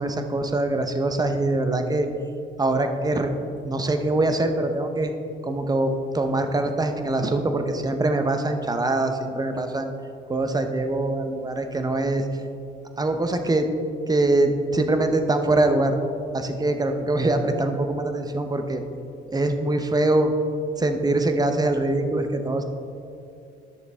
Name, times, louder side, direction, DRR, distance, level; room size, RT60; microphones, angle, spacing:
voice 1, 0.0-2.1 2.6-3.3 3.6-5.1 5.4-9.9 10.3-12.3 13.0-13.7 14.1-16.0 16.3-18.8 19.3-20.3 20.8-22.6, right 2 dB, 20° right, 6 dB, 0.8 m, -23 dB
11.0 x 6.5 x 3.5 m, 2.6 s
cardioid pair, 90°, 20 cm